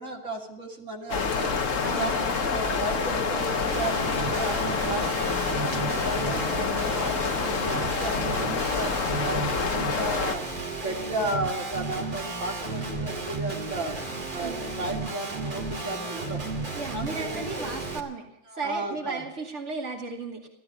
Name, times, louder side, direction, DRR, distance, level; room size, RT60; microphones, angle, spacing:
voice 1, 0.0-1.6 2.0-5.4 5.7-10.4 10.7-13.9 14.3-16.4 16.9-17.7 18.5-19.2, right 2 dB, 80° right, 0 dB, 3.1 m, -34 dB
sound 1, 1.1-10.4, left 5 dB, 75° left, 1.7 m, -27 dB
voice 2, 1.8-2.3 5.8-6.0 14.4-14.7 16.7-18.2 18.5-20.5, right 4 dB, 65° right, -1 dB, 2.8 m, -35 dB
Guitar, 3.7-18.0, right 3 dB, 40° right, 2.2 m, -33 dB
16.5 x 12.5 x 6.9 m, 0.85 s
omnidirectional pair, 1.3 m